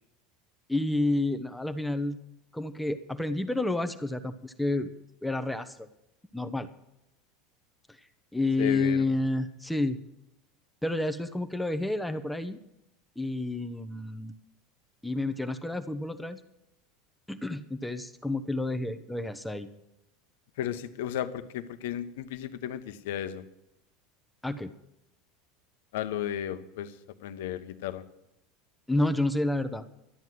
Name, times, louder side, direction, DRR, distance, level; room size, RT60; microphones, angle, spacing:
voice 1, 0.7-2.2 2.5-4.9 5.2-5.9 6.3-6.7 7.9-8.0 8.3-10.0 10.8-12.6 13.2-14.3 15.0-16.4 17.3-19.7 24.4-24.7 28.9-29.9, left 2 dB, 5° left, 8 dB, 0.9 m, -30 dB
voice 2, 8.6-9.1 20.6-23.4 25.9-28.0, left 10 dB, 70° left, 11 dB, 0.9 m, -34 dB
12.5 x 9.3 x 7.6 m, 0.85 s
hypercardioid pair, 85°, 0 cm